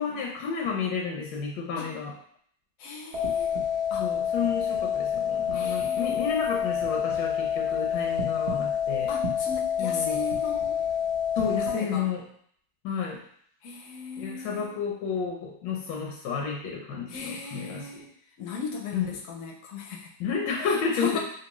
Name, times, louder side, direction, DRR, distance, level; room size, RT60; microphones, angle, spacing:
voice 1, 0.0-2.1 4.0-9.1 9.8-10.2 11.4-12.3 12.8-13.2 14.2-17.9 18.9-19.1 20.2-21.2, left 6 dB, 80° left, 0 dB, 1.3 m, -31 dB
voice 2, 2.8-3.5 3.9-4.1 5.5-6.4 9.1-10.8 11.7-12.1 13.6-14.8 17.1-18.1 18.4-20.1 20.6-21.2, left 5 dB, 65° left, 1 dB, 0.8 m, -37 dB
sound 1, 3.1-11.7, left 8 dB, 50° right, 0.9 m, -28 dB
3.4 x 2.6 x 2.9 m, 0.63 s
omnidirectional pair, 1.9 m